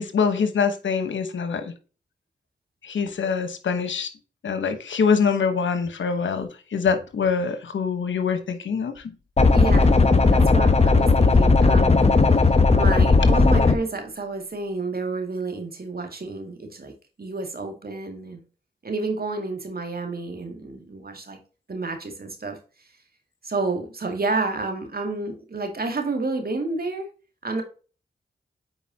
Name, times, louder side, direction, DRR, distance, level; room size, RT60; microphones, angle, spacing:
voice 1, 0.0-1.7 2.8-4.1 4.4-9.0, left 5 dB, 80° left, 9 dB, 1.1 m, -24 dB
sound 1, 9.4-13.8, left 3 dB, 35° left, 1.0 m, -16 dB
voice 2, 9.5-9.9 10.3-12.0 12.3-16.9 17.2-18.4 18.8-21.4 21.7-22.6 23.4-27.1 27.4-27.6, right 3 dB, 50° right, 4 dB, 2.1 m, -30 dB
8.1 x 4.7 x 2.8 m, 0.35 s
cardioid pair, 40°, 19 cm